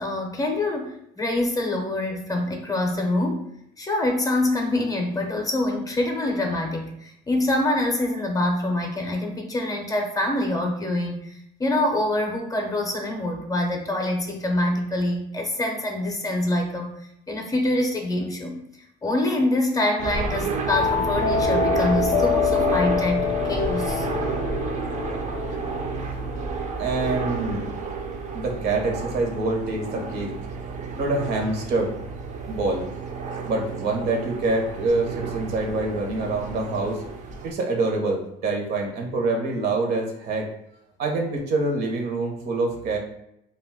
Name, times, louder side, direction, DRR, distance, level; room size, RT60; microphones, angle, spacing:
voice 1, 0.0-3.5 3.8-16.9 17.3-18.6 19.0-24.1, left 1 dB, 20° left, 2 dB, 0.5 m, -25 dB
sound 1, 20.0-37.5, right 5 dB, 45° right, 0.4 m, -30 dB
sound 2, 20.7-27.2, left 8 dB, 85° left, 0.4 m, -26 dB
voice 2, 26.8-27.6 28.3-30.3 31.0-31.9 32.5-32.9 33.5-37.0 37.4-40.5 41.0-43.0, right 2 dB, 70° right, 1 dB, 0.8 m, -25 dB
2.5 x 2.2 x 3.5 m, 0.78 s
cardioid pair, 110°, 17 cm